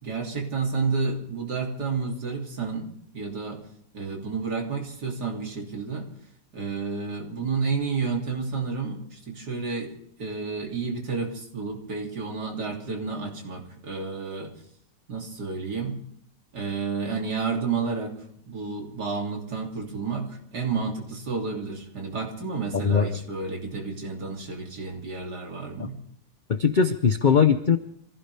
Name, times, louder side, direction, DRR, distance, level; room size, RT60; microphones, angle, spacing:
voice 1, 0.0-3.6 3.9-6.1 6.5-9.9 10.2-14.5 15.1-16.0 16.5-18.2 18.5-26.0, right 4 dB, 80° right, 1 dB, 3.5 m, -30 dB
voice 2, 26.5-27.8, left 6 dB, 40° left, 9 dB, 0.7 m, -20 dB
25.5 x 16.0 x 3.4 m, 0.67 s
omnidirectional pair, 1.7 m